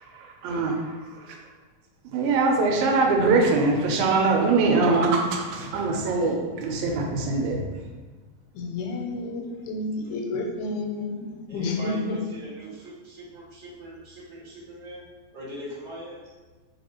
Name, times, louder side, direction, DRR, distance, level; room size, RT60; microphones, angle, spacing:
voice 1, 0.2-1.4 2.1-7.7, right 3 dB, 85° right, 2 dB, 2.0 m, -23 dB
voice 2, 8.6-12.2, left 2 dB, 90° left, 2 dB, 2.0 m, -30 dB
voice 3, 11.5-15.1 15.3-16.3, right 1 dB, 40° left, -14 dB, 0.4 m, -40 dB
4.0 x 3.3 x 2.8 m, 1.3 s
omnidirectional pair, 3.4 m